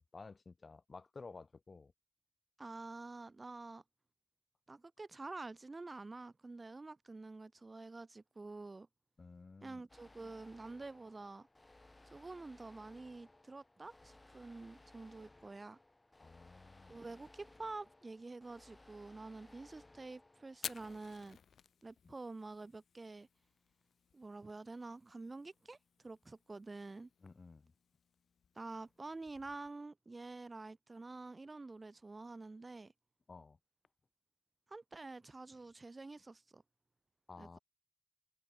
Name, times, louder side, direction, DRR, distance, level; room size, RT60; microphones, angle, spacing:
voice 1, 0.1-1.9 9.2-9.8 16.2-17.0 22.0-22.1 27.2-27.7 33.3-33.6 37.3-37.6, left 4 dB, 40° left, 2.1 m, -53 dB
voice 2, 2.6-3.8 4.7-8.9 9.6-11.5 12.1-15.8 16.9-21.4 21.8-23.3 24.1-25.8 26.0-27.1 28.5-32.9 34.7-36.6 37.4-37.6, right 3 dB, 30° right, 0.4 m, -48 dB
sound 1, 9.9-21.0, left 2 dB, 20° left, 6.3 m, -62 dB
Fire, 20.5-29.7, left 7 dB, 85° left, 1.7 m, -54 dB
wide cardioid pair, 105°, 0 cm